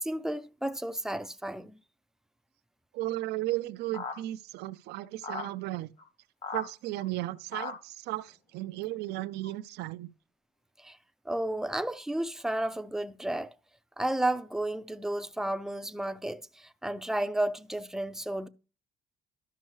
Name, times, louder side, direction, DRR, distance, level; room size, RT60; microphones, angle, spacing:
voice 1, 0.0-1.8 10.8-11.0 11.3-13.5 14.0-18.5, right 1 dB, 5° right, 0.4 m, -32 dB
voice 2, 2.9-5.9 6.5-10.1, right 16 dB, 80° right, 0.4 m, -35 dB
sound 1, 3.9-4.2 5.2-5.5 6.0-6.1 6.4-6.6 7.0-7.1 7.5-7.7 8.8-8.9 9.4-9.5, left 5 dB, 45° left, 1.4 m, -37 dB
12.5 x 5.3 x 3.2 m
cardioid pair, 110°, 17 cm